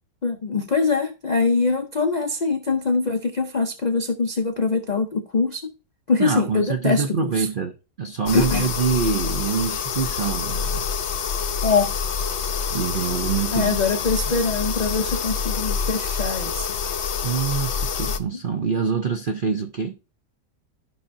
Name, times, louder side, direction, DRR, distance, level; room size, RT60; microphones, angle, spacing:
voice 1, 0.2-5.7 6.1-7.5 8.3-8.7 11.6-11.9 13.5-16.7, left 4 dB, 75° left, 0.4 m, -23 dB
voice 2, 6.2-10.9 12.7-13.8 14.3-14.4 17.2-20.0, right 6 dB, 70° right, 0.5 m, -25 dB
sound 1, 8.3-18.2, left 6 dB, 60° left, 0.7 m, -26 dB
14.0 x 5.6 x 2.6 m
omnidirectional pair, 1.8 m